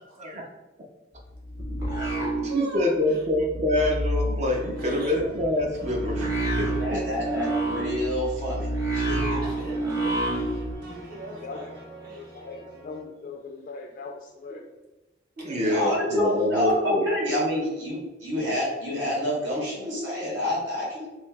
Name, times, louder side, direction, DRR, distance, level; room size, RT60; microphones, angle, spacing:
sound 1, 1.2-3.0 3.3-10.8, right 2 dB, 20° right, 0.8 m, -29 dB
voice 1, 1.8-7.0 15.4-17.1, left 1 dB, 40° right, 1 dB, 0.4 m, -26 dB
voice 2, 2.5-3.2 4.8-5.1 9.4-12.4 14.5-14.6 15.4-15.8, right 3 dB, 55° right, -5 dB, 1.1 m, -40 dB
sound 2, 4.4-13.0, equal, 85° right, 1.3 m, -46 dB
voice 3, 6.8-9.4 15.6-21.1, left 1 dB, 70° right, -5 dB, 1.3 m, -28 dB
voice 4, 11.3-14.6 15.8-16.3, left 4 dB, 50° left, 2 dB, 0.3 m, -40 dB
3.1 x 2.6 x 3.3 m, 1.1 s
head